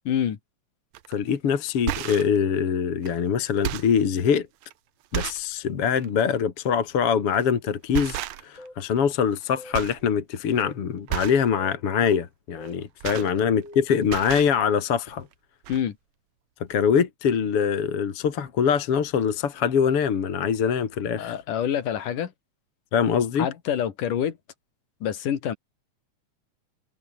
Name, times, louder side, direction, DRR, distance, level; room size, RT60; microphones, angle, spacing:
voice 1, 0.1-0.4 13.1-13.3 15.7-16.0 21.2-22.3 23.4-24.4 25.0-25.5, left 9 dB, 90° left, 3.6 m, -27 dB
sound 1, 0.9-1.1 1.7-2.4 3.0-3.1 3.5-4.0 4.6-4.7 5.1-5.5 5.9-6.1 7.3-7.5 7.9-8.7 9.0-9.4 9.7-10.1 10.4-10.6 11.1-11.5 12.6-13.8 14.0-14.6 15.3-15.4 15.6-15.8, right 14 dB, 70° right, 2.0 m, -32 dB
voice 2, 1.1-4.5 5.1-15.3 16.7-21.4 22.9-23.5, left 7 dB, 50° left, 2.9 m, -23 dB
sound 2, 8.6-8.8 9.6-9.8 10.6-10.8 11.6-11.8 12.6-12.8 13.6-13.9, left 1 dB, 10° left, 5.2 m, -44 dB
omnidirectional pair, 3.6 m